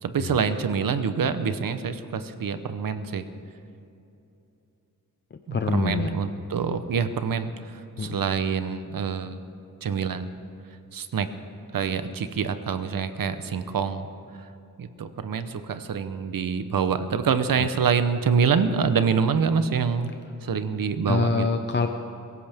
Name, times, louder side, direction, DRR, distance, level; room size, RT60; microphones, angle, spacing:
voice 1, 0.0-3.3 5.5-9.4 9.8-10.3 10.9-11.3 11.7-14.1 14.4-14.5 14.8-20.1 20.4-21.5, right 6 dB, 80° right, 11 dB, 0.9 m, -26 dB
voice 2, 5.5-6.1 8.0-8.2 21.1-21.9, left 4 dB, 35° left, 6 dB, 0.6 m, -25 dB
23.0 x 15.5 x 3.5 m, 2.8 s
wide cardioid pair, 145°, 34 cm